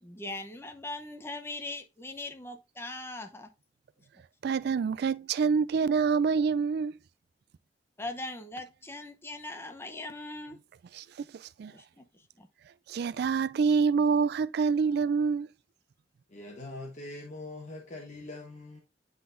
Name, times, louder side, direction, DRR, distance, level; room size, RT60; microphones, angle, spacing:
voice 1, 0.0-3.5 8.0-10.6 11.7-12.5, left 2 dB, 15° left, 0.8 m, -40 dB
voice 2, 4.4-6.9 11.0-11.1 11.3-11.7 12.9-15.5, right 5 dB, 60° right, 0.3 m, -26 dB
voice 3, 16.3-18.8, left 2 dB, 40° left, 1.2 m, -42 dB
9.2 x 4.1 x 2.5 m
head